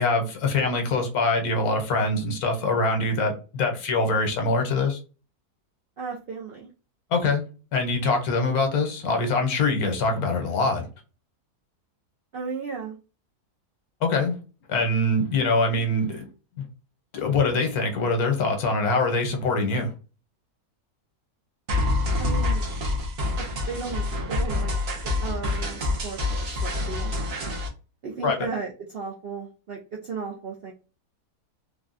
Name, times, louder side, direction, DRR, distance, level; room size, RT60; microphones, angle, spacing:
voice 1, 0.0-5.0 7.1-7.4 7.7-10.9 14.0-14.4 14.7-16.3 17.1-19.9 28.2-28.5, left 3 dB, 75° left, 4 dB, 1.3 m, -24 dB
voice 2, 6.0-6.7 12.3-12.9 22.2-22.6 23.4-24.7 25.2-27.1 28.0-30.7, right 5 dB, 65° right, -2 dB, 0.5 m, -35 dB
sound 1, 21.7-27.7, left 2 dB, 50° right, 0.9 m, -27 dB
3.4 x 2.2 x 2.5 m, 0.34 s
omnidirectional pair, 1.6 m